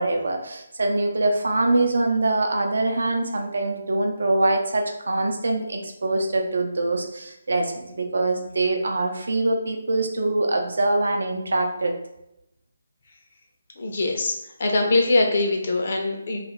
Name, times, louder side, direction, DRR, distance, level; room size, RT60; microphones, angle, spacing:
voice 1, 0.0-11.9, right 2 dB, 75° right, 3 dB, 0.6 m, -24 dB
voice 2, 13.8-14.3 14.6-16.4, left 2 dB, 55° left, 1 dB, 0.6 m, -22 dB
2.4 x 2.4 x 3.0 m, 0.84 s
hypercardioid pair, 165°, 0 cm